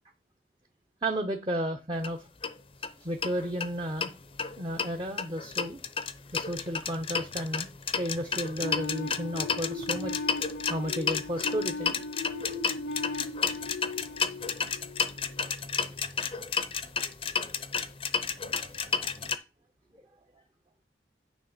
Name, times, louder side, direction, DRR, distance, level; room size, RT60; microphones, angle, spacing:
voice 1, 1.0-2.3 3.0-4.1 4.6-5.8 6.3-7.7 8.0-10.1 10.7-12.0 18.4-19.1 19.9-20.0, equal, 25° right, 3 dB, 0.7 m, -33 dB
sound 1, 2.0-2.1 2.4-2.5 2.8-2.9 3.2-4.1 4.4-19.4, left 6 dB, 30° left, 0.6 m, -32 dB
sound 2, 8.6-15.4, left 3 dB, 75° left, 0.7 m, -37 dB
9.3 x 3.4 x 6.6 m, 0.29 s
head